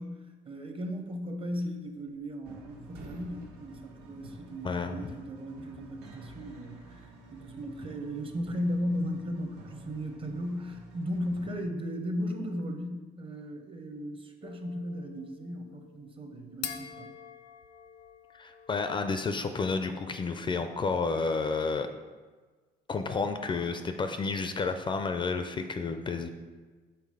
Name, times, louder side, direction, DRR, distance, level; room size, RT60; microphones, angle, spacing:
voice 1, 0.0-17.1, equal, 30° right, 5 dB, 0.7 m, -36 dB
sound 1, 1.8-2.6 2.8-5.0, right 3 dB, 70° right, 0.9 m, -50 dB
sound 2, 2.4-11.6, right 1 dB, 90° right, 1.1 m, -51 dB
voice 2, 4.6-5.0 18.3-21.9 22.9-26.3, left 4 dB, 30° left, 7 dB, 0.4 m, -31 dB
sound 3, 14.4-19.3, left 9 dB, 90° left, 0.6 m, -46 dB
5.7 x 3.8 x 4.8 m, 1.4 s
cardioid pair, 110°, 17 cm